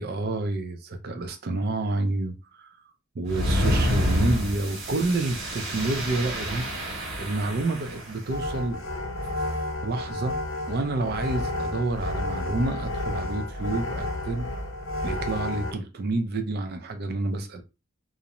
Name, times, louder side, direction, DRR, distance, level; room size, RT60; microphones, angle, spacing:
voice 1, 0.0-2.8 3.1-6.6 7.2-8.8 9.8-10.3 10.7-14.5 15.0-17.6, right 2 dB, 45° right, 0.4 m, -29 dB
sound 1, 3.3-8.2, equal, 70° right, 1.1 m, -28 dB
sound 2, 8.3-15.7, left 1 dB, 60° left, 0.6 m, -31 dB
2.5 x 2.0 x 2.8 m
head